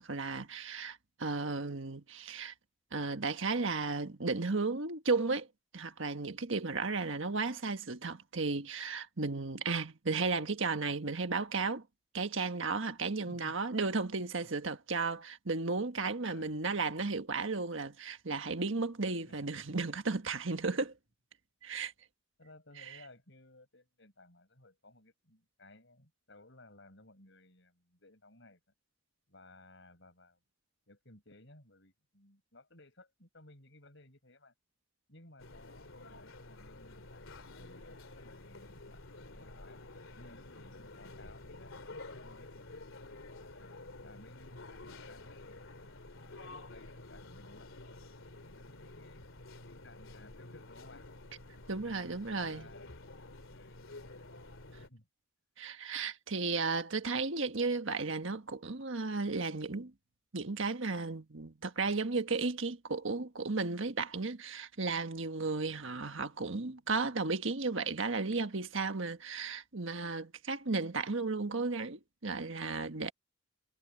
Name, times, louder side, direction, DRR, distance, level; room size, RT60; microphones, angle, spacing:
voice 1, 0.0-2.5 2.9-5.5 5.7-11.8 12.1-20.9 21.6-21.9 51.7-52.7 55.6-59.9 60.3-73.1, right 4 dB, 70° right, 1.5 m, -34 dB
voice 2, 16.2-16.5 19.3-19.8 22.4-28.6 29.3-30.4 30.9-34.5 35.1-39.0 39.3-39.8 40.1-42.8 43.5-47.7 48.5-49.3 49.7-51.1 52.2-53.0 53.5-53.8 54.8-55.1, left 2 dB, 60° left, 7.9 m, -59 dB
sound 1, 35.4-54.9, left 2 dB, 75° left, 2.7 m, -50 dB
head